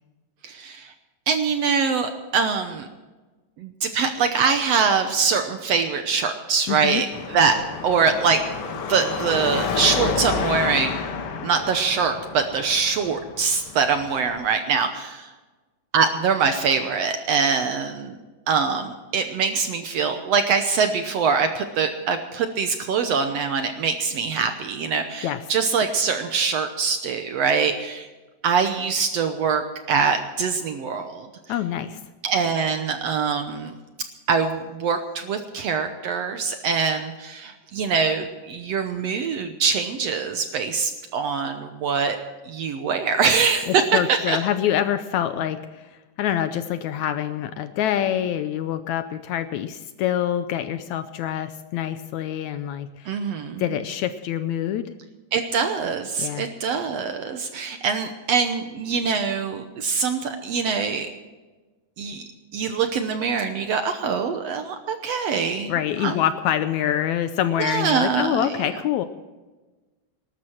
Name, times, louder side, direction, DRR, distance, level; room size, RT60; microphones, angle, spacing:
voice 1, 0.4-0.9 1.3-2.9 3.6-7.6 7.8-8.4 8.9-10.9 11.4-15.3 15.9-18.2 18.5-28.1 28.4-31.3 32.2-33.7 34.3-42.2 42.5-44.4 53.0-53.6 55.3-61.1 62.0-62.2 62.5-65.7 66.0-66.2 67.6-68.5, right 5 dB, 70° right, 7 dB, 1.7 m, -23 dB
voice 2, 6.7-7.0 25.2-25.4 31.5-32.0 43.7-45.8 46.2-53.1 53.6-54.9 56.2-56.5 65.7-69.1, left 10 dB, 75° left, 11 dB, 1.8 m, -25 dB
Car passing by / Traffic noise roadway noise / Engine, 7.1-14.4, left 5 dB, 60° left, 1.6 m, -30 dB
19.5 x 12.5 x 4.5 m, 1.2 s
omnidirectional pair, 3.7 m